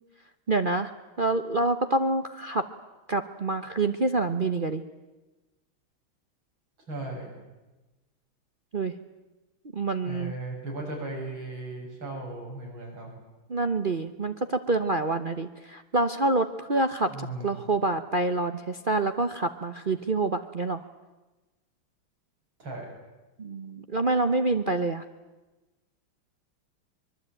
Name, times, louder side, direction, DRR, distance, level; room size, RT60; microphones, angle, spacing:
voice 1, 0.5-2.7 3.1-4.8 8.7-8.9 9.7-10.3 13.5-20.8 23.4-25.0, right 2 dB, 50° right, 8 dB, 0.6 m, -27 dB
voice 2, 6.9-7.3 10.0-13.1 17.1-17.6 22.6-22.9, right 2 dB, 65° right, -1 dB, 8.0 m, -36 dB
24.0 x 22.5 x 9.0 m, 1.1 s
omnidirectional pair, 2.3 m